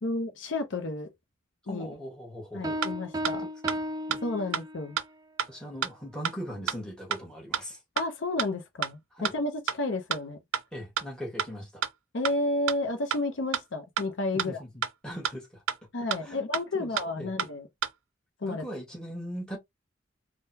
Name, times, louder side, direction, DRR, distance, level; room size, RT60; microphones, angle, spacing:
voice 1, 0.0-1.1 1.7-1.9 2.5-3.4 4.2-5.0 8.0-10.4 12.1-14.6 15.9-17.7 18.4-18.6, left 2 dB, 65° left, 0.6 m, -31 dB
voice 2, 1.7-2.9 3.3-3.5 4.1-4.2 5.5-7.8 9.1-9.3 10.7-11.8 14.3-15.6 16.2-16.4 16.7-17.3 18.4-19.6, equal, 5° left, 1.2 m, -40 dB
sound 1, 2.6-5.0, equal, 20° right, 0.4 m, -34 dB
sound 2, 2.8-2.9 3.2-3.3 3.7-3.8 4.1-4.2 4.5-4.6 5.0-5.1 5.4-5.5 5.8-5.9 6.2-6.3 6.7-6.8 7.1-7.2 7.5-7.6 8.0-8.1 8.4-8.5 8.8-8.9 9.2-9.3 9.7-9.8 10.1-10.2 10.5-10.6 11.0-11.1 11.4-11.5 11.8-11.9 12.2-12.3 12.7-12.8 13.1-13.2 13.5-13.6 14.0-14.1 14.4-14.5 14.8-14.9 15.2-15.3 15.7-15.8 16.1-16.2 16.5-16.6 17.0-17.1 17.4-17.5 17.8-17.9, right 8 dB, 85° right, 0.4 m, -28 dB
3.6 x 2.2 x 2.7 m
head